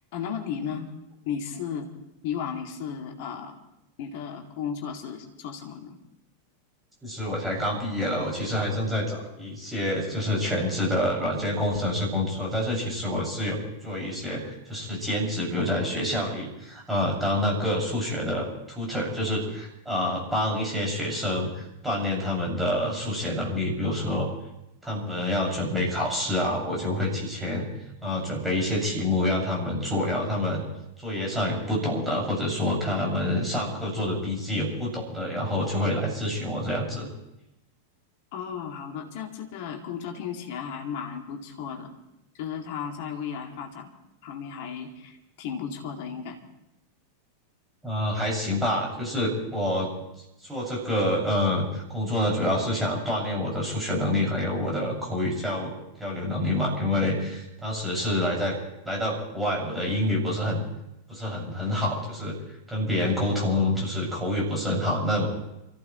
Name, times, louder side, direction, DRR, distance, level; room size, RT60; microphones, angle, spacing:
voice 1, 0.1-0.9 1.3-1.9 2.2-3.5 4.0-6.0 38.3-41.9 42.4-43.9 44.2-46.4, left 7 dB, 50° left, 3 dB, 2.3 m, -34 dB
voice 2, 7.0-24.3 24.8-27.7 28.0-30.6 31.0-37.1 47.8-49.9 50.4-55.7 56.0-58.6 58.8-60.6 61.1-62.4 62.7-65.3, left 1 dB, 5° right, -3 dB, 6.2 m, -27 dB
28.5 x 15.0 x 3.1 m, 0.87 s
figure-of-eight pair, 90°, 0 cm